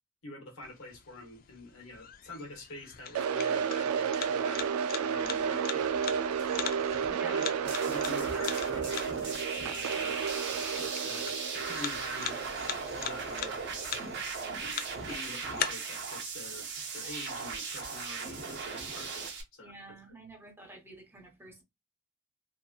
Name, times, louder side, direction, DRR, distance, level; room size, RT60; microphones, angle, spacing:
voice 1, 0.2-4.6 5.0-6.0 7.1-10.2 10.8-13.9 14.6-19.8, left 2 dB, 70° left, 1.1 m, -46 dB
sound 1, 0.6-15.6, left 9 dB, 45° left, 0.3 m, -42 dB
sound 2, 3.1-13.2, right 7 dB, 90° right, 0.3 m, -32 dB
voice 2, 6.8-7.4 19.6-21.6, right 2 dB, 10° right, 0.6 m, -50 dB
sound 3, 7.6-19.4, right 5 dB, 55° right, 0.7 m, -38 dB
2.8 x 2.6 x 2.3 m
head